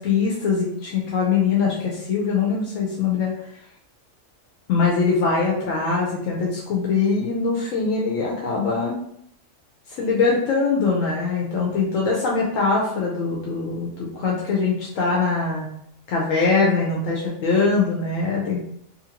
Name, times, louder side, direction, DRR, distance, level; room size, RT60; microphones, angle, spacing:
voice 1, 0.0-3.3 4.7-9.0 10.0-15.7 16.1-18.6, left 4 dB, 75° left, -3 dB, 1.0 m, -22 dB
2.8 x 2.6 x 2.8 m, 0.70 s
omnidirectional pair, 1.4 m